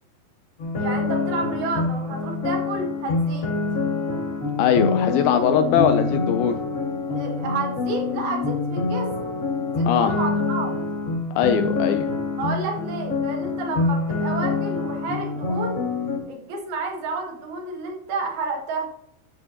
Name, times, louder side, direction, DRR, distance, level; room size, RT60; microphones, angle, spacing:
sound 1, 0.6-16.2, left 4 dB, 55° left, 0.8 m, -26 dB
voice 1, 0.8-3.5 7.1-9.3 9.8-10.8 12.4-15.8 16.3-18.9, right 3 dB, 70° right, 0 dB, 3.5 m, -30 dB
voice 2, 4.6-6.6 9.9-10.2 11.4-12.1, left 8 dB, 85° left, 9 dB, 2.2 m, -20 dB
12.5 x 7.9 x 2.7 m, 0.73 s
omnidirectional pair, 4.7 m